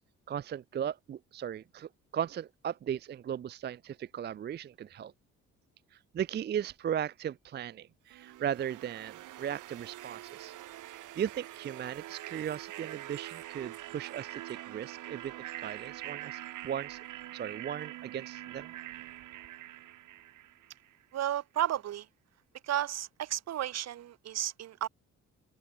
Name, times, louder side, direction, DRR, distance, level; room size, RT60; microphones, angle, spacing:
voice 1, 0.3-5.1 6.1-10.5 10.9-17.0 17.3-18.7, right 9 dB, 35° right, 0.4 m, -37 dB
sound 1, 8.1-21.0, right 15 dB, 85° right, 2.3 m, -45 dB
voice 2, 21.1-22.1 22.6-24.9, right 12 dB, 60° right, 0.8 m, -33 dB
open air
cardioid pair, 90°, 30 cm